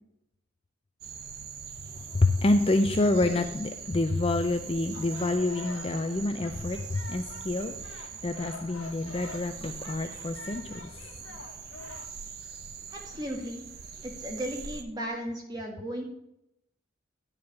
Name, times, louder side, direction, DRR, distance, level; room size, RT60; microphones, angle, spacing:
sound 1, 1.0-14.8, right 6 dB, 50° right, 0.8 m, -43 dB
voice 1, 2.1-10.9, left 2 dB, 25° left, 7 dB, 0.5 m, -27 dB
sound 2, 4.9-12.1, left 3 dB, 80° left, 1.4 m, -46 dB
voice 2, 12.9-13.6 14.0-16.0, equal, 20° right, 0 dB, 1.8 m, -35 dB
10.5 x 4.8 x 6.9 m, 0.80 s
head